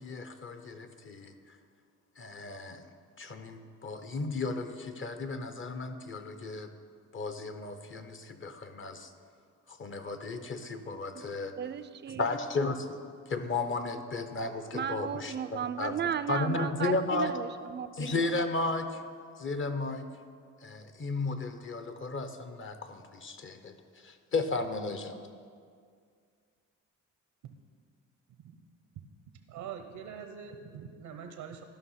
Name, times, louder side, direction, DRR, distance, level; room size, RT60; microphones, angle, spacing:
voice 1, 0.0-1.3 2.2-2.8 3.2-6.7 7.1-9.1 9.7-11.5 12.2-12.9 13.3-16.0 16.3-17.3 18.0-19.0 19.4-20.1 20.6-23.7 24.0-25.2, left 3 dB, 40° left, 9 dB, 0.9 m, -34 dB
voice 2, 11.6-12.3 14.7-18.4, right 8 dB, 35° right, 14 dB, 0.4 m, -35 dB
voice 3, 29.5-31.6, right 7 dB, 85° right, 6 dB, 0.8 m, -43 dB
13.0 x 5.7 x 5.7 m, 2.2 s
cardioid pair, 85°, 32 cm